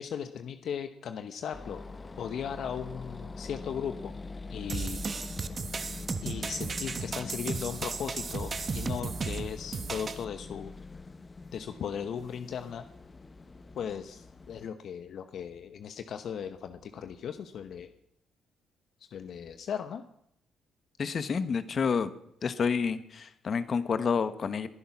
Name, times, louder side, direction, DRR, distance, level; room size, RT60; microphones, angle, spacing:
voice 1, 0.0-1.8 2.2-4.1 4.5-5.0 6.2-10.7 11.5-12.9 13.7-17.9 19.1-20.0, left 8 dB, 65° left, 9 dB, 1.0 m, -37 dB
sound 1, 1.5-14.7, left 3 dB, 30° left, 1.0 m, -44 dB
sound 2, 4.7-10.2, right 5 dB, 40° right, 1.2 m, -35 dB
voice 2, 21.0-22.1 22.4-24.7, left 6 dB, 50° left, 12 dB, 1.3 m, -29 dB
21.0 x 10.5 x 6.0 m, 0.76 s
cardioid pair, 90°, 0 cm